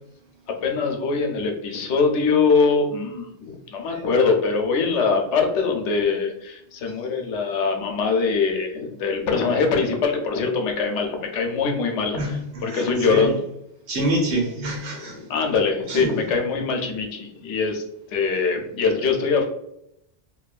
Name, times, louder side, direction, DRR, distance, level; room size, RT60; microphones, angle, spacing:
voice 1, 0.5-13.4 14.9-17.8 18.1-19.4, left 4 dB, 80° left, 2 dB, 0.9 m, -23 dB
voice 2, 12.2-13.3 13.9-15.2 15.9-16.1, right 1 dB, 75° right, -1 dB, 1.0 m, -26 dB
2.7 x 2.2 x 2.3 m, 0.77 s
omnidirectional pair, 1.2 m